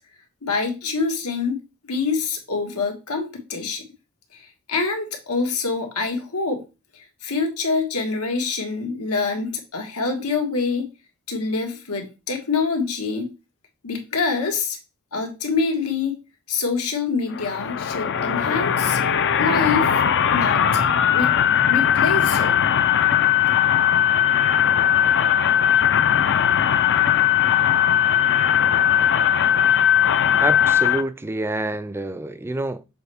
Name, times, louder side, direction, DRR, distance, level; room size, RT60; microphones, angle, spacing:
voice 1, 0.4-1.6 1.8-3.8 4.3-6.6 6.9-10.9 11.3-13.3 13.8-14.8 15.1-16.2 16.5-19.0 19.4-20.0 20.3-21.3 21.7-22.6, left 4 dB, 90° left, 1.6 m, -26 dB
sound 1, 17.3-31.0, left 9 dB, 55° left, 0.5 m, -19 dB
voice 2, 30.4-32.8, right 2 dB, 10° right, 0.3 m, -27 dB
6.8 x 4.2 x 3.5 m
head